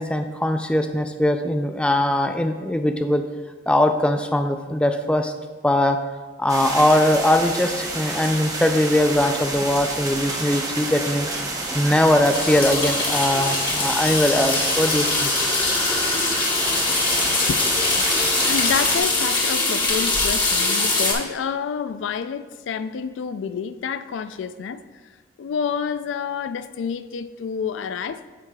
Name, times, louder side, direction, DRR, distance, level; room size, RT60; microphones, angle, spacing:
voice 1, 0.0-3.2 3.7-5.3 5.6-6.0 6.4-15.3, left 1 dB, 5° left, 0.3 m, -21 dB
sound 1, 6.5-19.0, right 2 dB, 20° right, 0.7 m, -29 dB
sound 2, 12.3-21.1, left 3 dB, 25° left, 1.4 m, -22 dB
voice 2, 17.1-17.7 18.4-24.8 25.4-28.2, left 6 dB, 85° left, 0.3 m, -28 dB
13.5 x 4.8 x 2.3 m
head